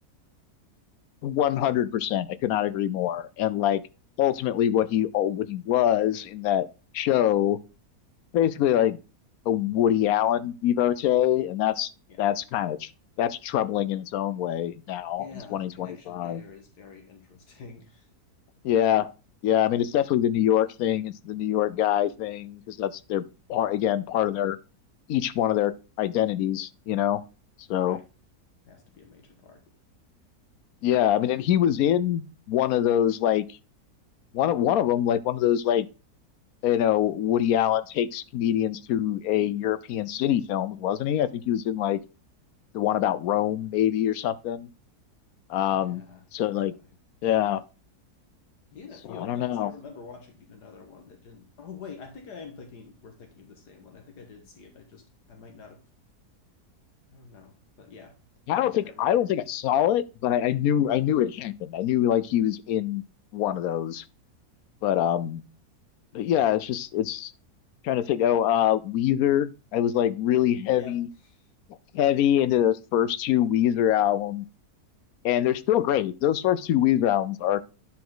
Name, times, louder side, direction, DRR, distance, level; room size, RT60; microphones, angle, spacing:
voice 1, 1.2-3.8 4.2-6.7 6.9-7.6 8.3-9.0 9.5-11.9 12.2-12.9 13.2-15.3 15.5-16.4 18.6-19.1 19.4-23.2 23.5-24.6 25.1-27.2 27.7-28.0 30.8-33.5 34.3-35.9 36.6-42.0 42.7-44.7 45.5-46.0 46.3-46.7 47.2-47.6 49.2-49.7 58.5-63.0 63.3-64.0 64.8-65.4 66.1-67.3 67.8-71.1 71.9-74.5 75.2-77.6, left 11 dB, 70° left, 1.0 m, -24 dB
voice 2, 15.2-18.1 27.8-28.0 28.6-29.6 45.7-46.2 46.7-46.9 48.7-55.8 57.1-58.2 58.6-59.3 70.8-71.5, left 5 dB, 85° left, 1.9 m, -47 dB
10.5 x 4.9 x 3.8 m
omnidirectional pair, 1.7 m